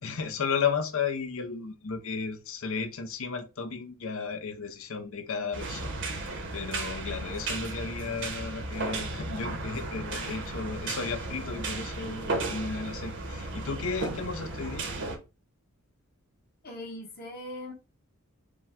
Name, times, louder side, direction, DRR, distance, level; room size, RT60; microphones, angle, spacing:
voice 1, 0.0-5.9 6.2-14.9, left 5 dB, 65° left, 0.7 m, -34 dB
sound 1, 5.5-15.2, right 2 dB, 55° right, 0.9 m, -35 dB
voice 2, 16.6-17.7, left 1 dB, 45° left, 1.1 m, -40 dB
5.0 x 2.2 x 3.5 m
head